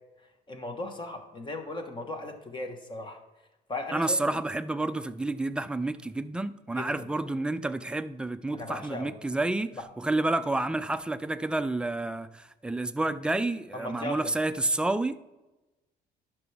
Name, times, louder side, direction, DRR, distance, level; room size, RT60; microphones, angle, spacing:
voice 1, 0.5-3.2 3.7-4.2 6.7-7.1 8.5-9.1 13.7-14.3, left 2 dB, 30° left, 1.3 m, -37 dB
voice 2, 3.9-9.7 10.0-15.2, right 2 dB, 5° right, 0.4 m, -29 dB
11.0 x 6.0 x 3.4 m
cardioid pair, 110°, 17 cm